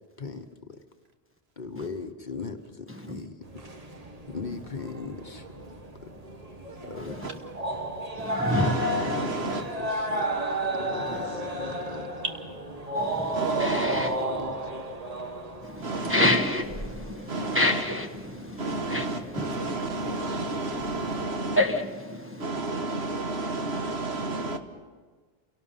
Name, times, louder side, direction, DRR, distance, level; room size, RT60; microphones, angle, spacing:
voice 1, 0.2-0.8 1.6-3.3 4.3-5.5 6.9-7.3 9.5-10.3 10.8-12.1 13.9-14.9, left 4 dB, 50° left, 1.2 m, -39 dB
voice 2, 2.9-3.2 7.0-7.3 8.2-9.7 11.1-11.2 12.9-14.2 15.6-21.2 21.5-22.4, left 1 dB, 15° right, 1.1 m, -30 dB
sound 1, 3.4-21.6, right 1 dB, 40° right, 1.5 m, -33 dB
voice 3, 8.5-9.6 13.3-13.9 15.8-16.2 17.3-17.6 18.6-21.6 22.4-24.6, right 2 dB, 85° right, 1.7 m, -31 dB
28.0 x 17.5 x 5.7 m
omnidirectional pair, 1.0 m